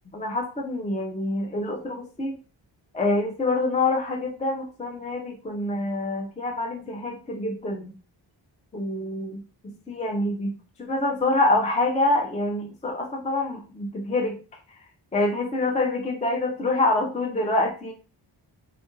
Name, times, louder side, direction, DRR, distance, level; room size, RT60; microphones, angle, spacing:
voice 1, 0.1-2.3 2.9-7.9 8.7-9.4 9.9-10.5 10.8-14.4 14.7-14.8 15.1-17.9, left 2 dB, 15° left, 1 dB, 0.4 m, -26 dB
2.7 x 2.5 x 2.5 m, 0.36 s
wide cardioid pair, 120°, 45 cm